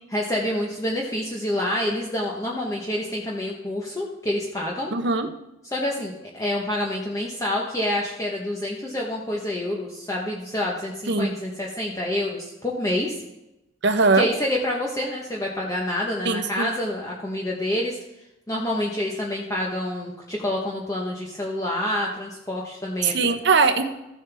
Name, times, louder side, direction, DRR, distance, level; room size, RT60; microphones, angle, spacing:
voice 1, 0.1-4.9 5.7-13.2 14.1-18.0 18.5-23.3, left 1 dB, 20° left, -3 dB, 1.0 m, -27 dB
voice 2, 4.9-5.3 11.1-11.3 13.8-14.3 16.2-16.7 23.0-23.8, right 4 dB, 65° right, 8 dB, 0.9 m, -20 dB
14.5 x 7.5 x 3.5 m, 0.91 s
head